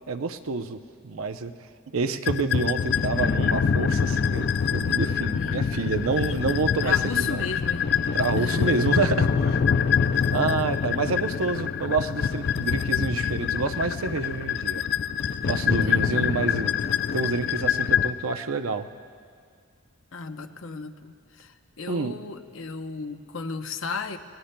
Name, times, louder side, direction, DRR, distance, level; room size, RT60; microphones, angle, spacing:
voice 1, 0.1-1.5 1.9-7.5 8.1-9.6 10.3-14.8 15.5-16.7 17.1-18.9 21.9-22.2, right 4 dB, 90° right, 9 dB, 0.6 m, -28 dB
sound 1, 2.3-18.1, left 7 dB, 50° left, 0.4 m, -25 dB
voice 2, 5.3-6.2 6.8-7.9 8.4-8.8 15.8-16.4 20.1-24.2, left 4 dB, 75° left, 7 dB, 0.8 m, -35 dB
29.5 x 19.0 x 2.2 m, 2.2 s
head